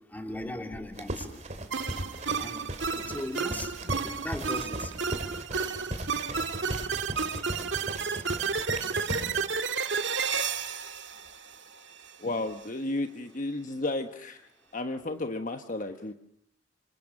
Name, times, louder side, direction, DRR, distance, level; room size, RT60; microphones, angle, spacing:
voice 1, 0.1-1.3 2.4-2.6 3.0-3.7 4.0-4.9, left 1 dB, 10° left, 3 dB, 3.4 m, -37 dB
sound 1, 1.0-9.4, right 1 dB, 40° right, 2.7 m, -38 dB
sound 2, 1.7-12.1, right 5 dB, 80° right, 1.9 m, -32 dB
voice 2, 12.2-14.4 14.7-16.1, left 2 dB, 45° left, 7 dB, 1.2 m, -33 dB
27.0 x 26.5 x 6.5 m, 0.68 s
head